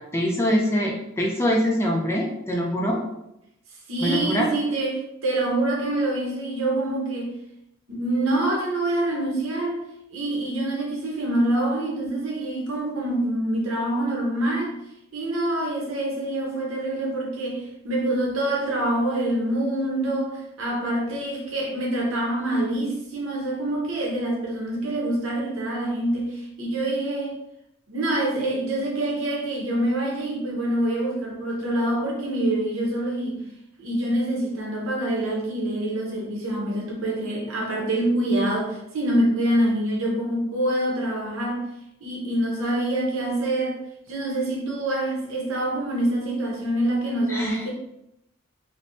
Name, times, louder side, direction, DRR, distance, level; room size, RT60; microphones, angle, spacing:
voice 1, 0.0-3.0 4.0-4.5 47.3-47.7, equal, 10° left, -1 dB, 0.3 m, -24 dB
voice 2, 3.9-7.3 7.9-9.8 10.1-14.8 15.1-27.4 27.9-33.4 33.8-41.7 42.0-43.8 44.1-47.7, right 1 dB, 65° right, -2 dB, 0.8 m, -26 dB
3.2 x 2.1 x 2.6 m, 0.81 s
head